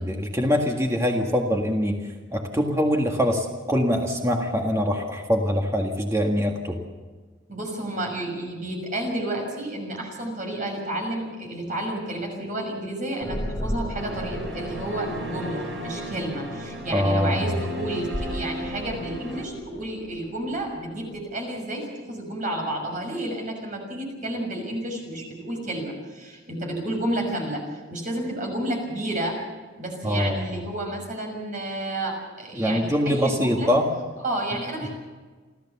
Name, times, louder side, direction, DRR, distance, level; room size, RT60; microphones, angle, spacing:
voice 1, 0.0-2.0 2.3-6.8 16.9-17.6 30.0-30.6 32.6-33.8, equal, 15° right, 2 dB, 1.7 m, -23 dB
voice 2, 7.5-27.6 27.9-29.4 29.8-33.7 34.2-34.9, right 1 dB, 40° right, 1 dB, 6.2 m, -31 dB
sound 1, 13.2-21.2, equal, 10° left, 2.6 m, -36 dB
sound 2, 13.9-19.4, equal, 65° right, 4.3 m, -35 dB
29.0 x 13.5 x 7.2 m, 1.4 s
head